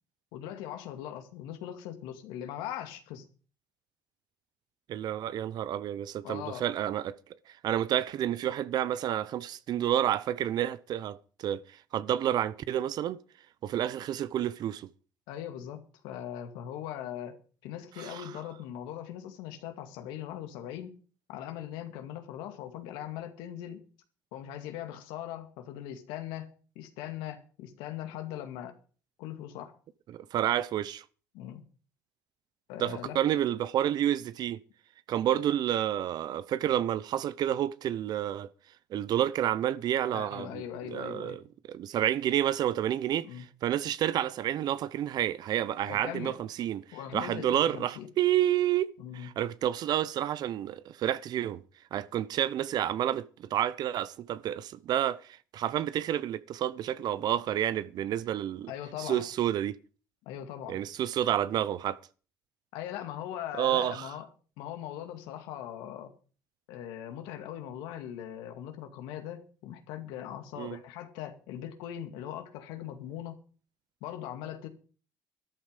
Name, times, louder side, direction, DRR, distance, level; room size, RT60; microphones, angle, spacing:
voice 1, 0.3-3.2 6.2-6.7 15.3-21.0 21.3-23.8 24.3-26.5 26.8-28.8 29.2-29.7 31.3-31.6 32.7-33.2 40.1-41.4 43.2-43.5 45.9-46.4 46.9-48.1 49.0-49.3 58.7-59.2 60.3-60.8 62.7-64.3 64.6-66.1 66.7-73.4 74.0-74.7, left 11 dB, 85° left, 2.2 m, -40 dB
voice 2, 4.9-7.2 7.5-11.6 11.9-13.2 13.6-14.9 18.0-18.2 30.1-31.0 32.8-34.6 35.1-38.5 38.9-40.6 40.9-41.4 41.7-51.6 51.9-55.3 55.5-58.7 59.0-59.8 60.7-62.0 63.6-64.1 70.6-70.8, right 11 dB, 65° right, 0.8 m, -29 dB
13.0 x 12.0 x 5.2 m
supercardioid pair, 80°, 8 cm